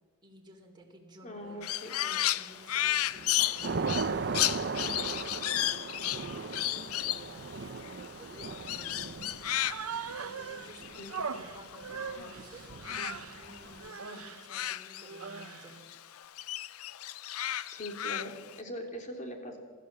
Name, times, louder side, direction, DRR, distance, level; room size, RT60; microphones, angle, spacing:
voice 1, 0.2-4.6 5.1-9.4 10.2-15.8, right 1 dB, 20° right, 0 dB, 3.7 m, -53 dB
voice 2, 1.2-1.9 11.0-11.5 17.7-19.6, equal, 35° left, 3 dB, 3.2 m, -42 dB
Crow, 1.6-12.3 12.6-15.6 15.9-18.6, left 13 dB, 80° left, 0.5 m, -34 dB
Thunder / Rain, 1.8-2.3 2.8-13.9, right 4 dB, 55° right, 0.7 m, -39 dB
Human voice, 9.5-10.7 11.1-13.4 13.8-14.4 15.0-15.8, right 6 dB, 85° right, 0.9 m, -40 dB
26.0 x 13.0 x 7.5 m, 1.5 s
head